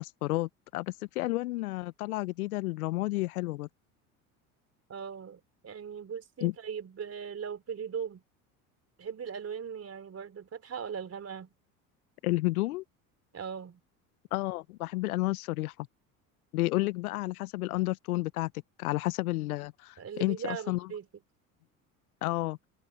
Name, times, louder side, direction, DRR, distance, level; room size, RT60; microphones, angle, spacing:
voice 1, 0.0-3.7 6.4-6.5 12.2-12.8 14.3-15.9 16.5-18.5 18.8-20.9 22.2-22.6, left 19 dB, 80° left, 0.9 m, -31 dB
voice 2, 4.9-8.2 9.0-11.5 13.3-13.8 20.0-21.1, right 7 dB, 35° right, 4.0 m, -39 dB
hypercardioid pair, 70°, 43 cm